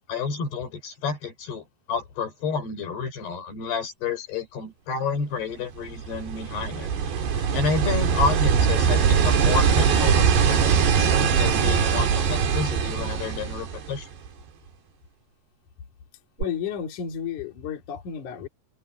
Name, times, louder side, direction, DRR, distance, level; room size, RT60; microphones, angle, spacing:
voice 1, 0.1-6.9 7.5-14.1, left 5 dB, 85° left, 7.7 m, -30 dB
sound 1, 5.8-14.3 16.4-16.5, right 7 dB, 90° right, 5.1 m, -22 dB
voice 2, 16.4-18.5, left 8 dB, 55° left, 3.8 m, -32 dB
omnidirectional pair, 4.6 m